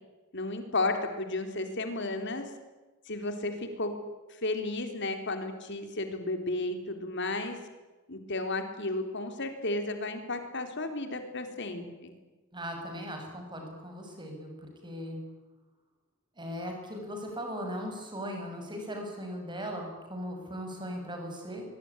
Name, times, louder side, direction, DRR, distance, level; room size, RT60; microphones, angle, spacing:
voice 1, 0.3-2.5 3.1-3.9 4.3-7.6 8.1-12.1, left 2 dB, 55° left, 7 dB, 4.0 m, -33 dB
voice 2, 12.5-15.2 16.4-21.6, equal, 20° right, 2 dB, 7.1 m, -38 dB
23.5 x 22.5 x 10.0 m, 1.2 s
head